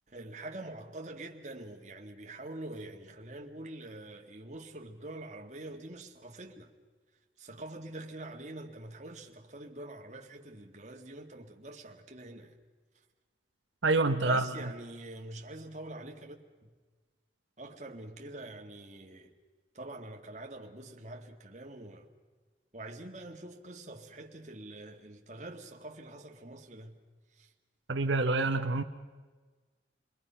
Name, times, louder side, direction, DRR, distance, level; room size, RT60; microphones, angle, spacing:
voice 1, 0.1-6.7 7.4-12.5 14.2-16.7 17.6-19.3 19.7-22.1 22.7-27.0 27.3-27.5, right 2 dB, 40° right, 2.0 m, -45 dB
voice 2, 13.8-14.4 27.9-28.8, right 3 dB, 90° right, 1.0 m, -27 dB
29.0 x 21.5 x 5.7 m
head